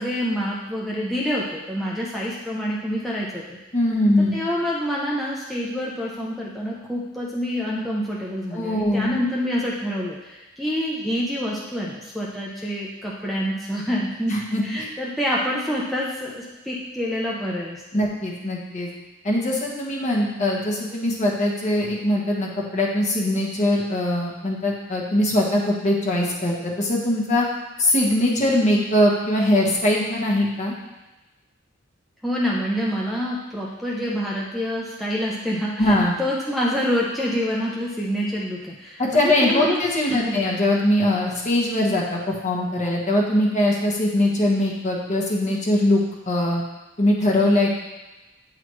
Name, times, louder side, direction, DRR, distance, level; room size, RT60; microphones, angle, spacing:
voice 1, 0.0-3.6 4.3-14.4 14.6-17.8 32.2-39.8 40.1-40.4, equal, ahead, -6 dB, 0.6 m, -27 dB
voice 2, 3.7-4.4 8.5-9.2 14.3-14.9 17.9-18.9 19.2-27.5 27.8-30.7 35.8-36.1 39.0-46.6 47.0-47.7, left 1 dB, 35° left, -3 dB, 1.2 m, -21 dB
9.2 x 4.0 x 3.1 m, 1.1 s
head